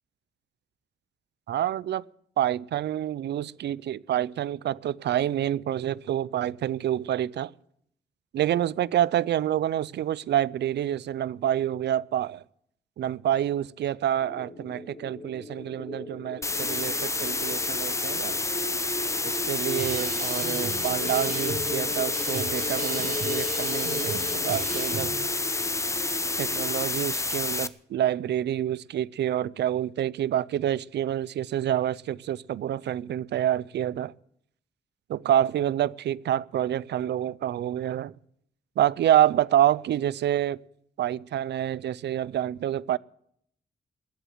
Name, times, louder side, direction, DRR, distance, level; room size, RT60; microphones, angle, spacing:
voice 1, 1.5-2.0 2.4-7.5 8.3-12.4 13.0-18.4 19.2-25.1 26.4-34.1 35.1-38.1 38.8-40.6 41.0-43.0, right 11 dB, 75° right, 0.5 m, -27 dB
sound 1, 14.2-26.9, left 2 dB, 40° left, 2.4 m, -38 dB
sound 2, 16.4-27.7, left 3 dB, 15° left, 0.6 m, -29 dB
sound 3, 19.8-25.3, right 6 dB, 50° right, 0.8 m, -38 dB
19.5 x 8.1 x 7.8 m
cardioid pair, 105°, 18 cm